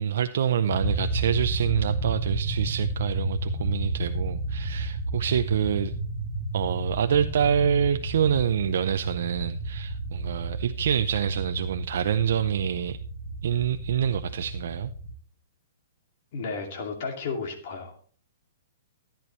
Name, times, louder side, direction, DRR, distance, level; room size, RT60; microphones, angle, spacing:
voice 1, 0.0-6.0 6.5-13.0 13.4-14.9, right 8 dB, 60° right, 0.5 m, -26 dB
sound 1, 0.7-15.1, right 1 dB, 20° left, 5.9 m, -32 dB
voice 2, 16.3-18.0, left 4 dB, 40° left, 2.4 m, -33 dB
14.0 x 10.0 x 3.1 m
hypercardioid pair, 175°, 0 cm